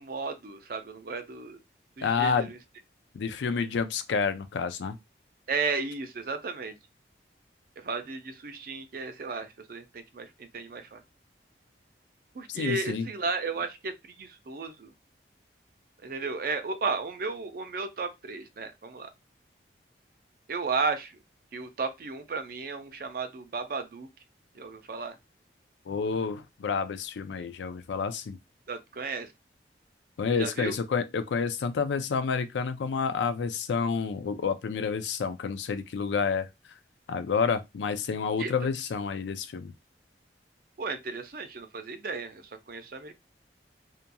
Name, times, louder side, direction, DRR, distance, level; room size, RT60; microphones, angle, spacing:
voice 1, 0.0-1.6 2.0-2.6 5.5-6.7 7.8-11.0 12.3-14.9 16.0-19.1 20.5-21.1 21.5-24.1 24.6-25.1 28.7-29.3 30.4-30.8 38.4-38.5 40.8-42.4 42.7-43.1, right 4 dB, 50° right, 0.4 m, -34 dB
voice 2, 2.0-2.5 3.1-5.0 12.5-13.1 25.9-28.4 30.2-36.5 37.1-39.7, left 5 dB, 80° left, 0.4 m, -29 dB
2.8 x 2.5 x 2.2 m
head